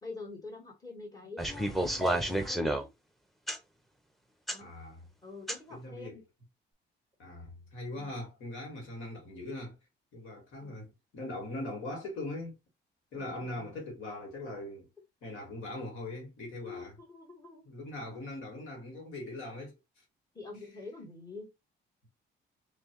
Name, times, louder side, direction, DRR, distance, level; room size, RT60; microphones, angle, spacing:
voice 1, 0.0-2.9 4.5-4.7 5.2-6.2 10.6-10.7 13.1-13.7 16.6-17.7 20.3-21.5, left 3 dB, 20° left, 2.2 m, -46 dB
sound 1, 1.4-2.8 3.5-3.6 4.5-4.6 5.5-5.6, right 1 dB, ahead, 0.9 m, -30 dB
voice 2, 4.6-5.1 5.7-6.2 7.2-9.8 10.1-12.6 13.1-14.9 15.2-16.9 17.6-19.8, left 1 dB, 90° left, 2.1 m, -41 dB
3.3 x 3.2 x 3.0 m
cardioid pair, 90°, 20 cm